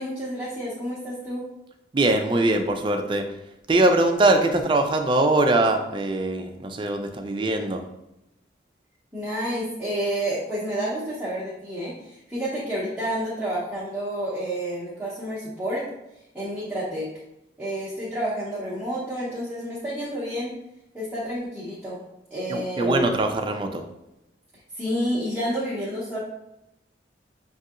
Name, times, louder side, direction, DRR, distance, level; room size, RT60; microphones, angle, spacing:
voice 1, 0.0-1.5 9.1-15.9 16.3-17.1 17.6-20.6 20.9-22.0 22.3-23.0 24.7-26.2, equal, 5° right, -10 dB, 0.8 m, -29 dB
voice 2, 1.9-3.3 3.7-7.8 22.5-23.8, right 2 dB, 25° right, 5 dB, 0.4 m, -22 dB
6.3 x 2.7 x 2.4 m, 0.88 s
head